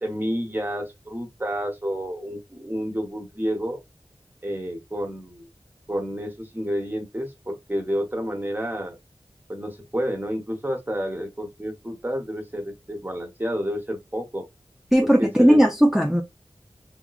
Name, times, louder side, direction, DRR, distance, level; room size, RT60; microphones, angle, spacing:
voice 1, 0.0-3.8 4.4-5.5 5.9-9.0 9.5-14.5 15.0-15.6, equal, 20° right, 1.2 m, -30 dB
voice 2, 14.9-16.2, equal, 5° right, 0.5 m, -17 dB
3.6 x 2.9 x 2.4 m
wide cardioid pair, 70°, 10 cm